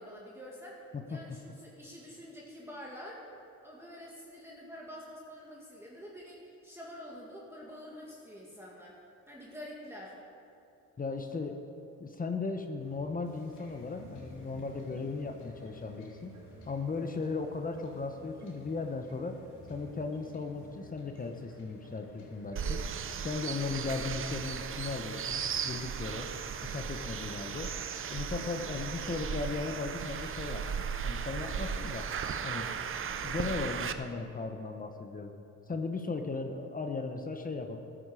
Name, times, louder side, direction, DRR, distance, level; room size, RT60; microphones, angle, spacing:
voice 1, 0.0-3.3 3.6-9.0 9.3-10.2, equal, 10° right, -4 dB, 1.9 m, -47 dB
voice 2, 0.9-1.4 11.0-11.6 12.0-16.3 16.7-19.4 19.7-22.8 23.2-26.3 26.6-27.7 28.1-30.6 31.0-32.1 32.4-32.7 33.2-35.3 35.7-37.8, left 4 dB, 30° left, 5 dB, 1.0 m, -37 dB
sound 1, 12.8-26.9, right 2 dB, 80° right, 3.0 m, -57 dB
Wind / Ocean / Boat Water vehicle, 13.3-23.6, left 2 dB, 90° left, 2.6 m, -56 dB
sound 2, 22.6-33.9, right 7 dB, 45° right, 0.7 m, -36 dB
14.0 x 9.9 x 4.9 m, 2.8 s
cardioid pair, 90°, 30 cm